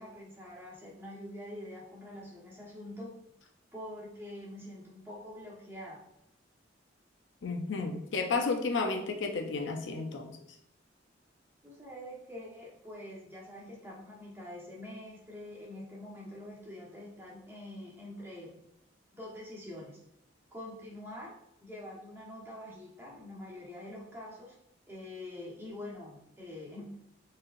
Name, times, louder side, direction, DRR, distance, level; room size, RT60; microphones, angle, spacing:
voice 1, 0.0-3.1 3.7-6.0 11.6-18.6 19.1-20.0 20.5-21.3 21.6-24.5 24.9-26.9, left 1 dB, 10° right, -5 dB, 1.2 m, -45 dB
voice 2, 7.4-10.4, left 4 dB, 70° left, 4 dB, 0.5 m, -32 dB
4.6 x 3.2 x 2.5 m, 0.82 s
head